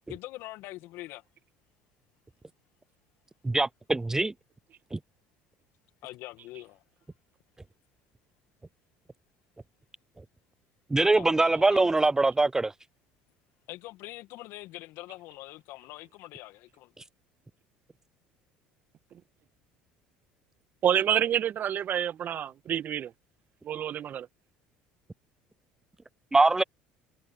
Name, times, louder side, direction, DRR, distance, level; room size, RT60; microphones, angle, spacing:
voice 1, 0.1-1.2 6.0-6.8 11.0-12.0 13.7-16.9, left 18 dB, 65° left, 2.0 m, -44 dB
voice 2, 3.4-4.3 4.9-5.0 10.9-12.7 26.3-26.6, right 2 dB, 15° right, 0.4 m, -23 dB
voice 3, 20.8-23.1 23.6-24.3, right 9 dB, 50° right, 1.6 m, -28 dB
hypercardioid pair, 70°, 4 cm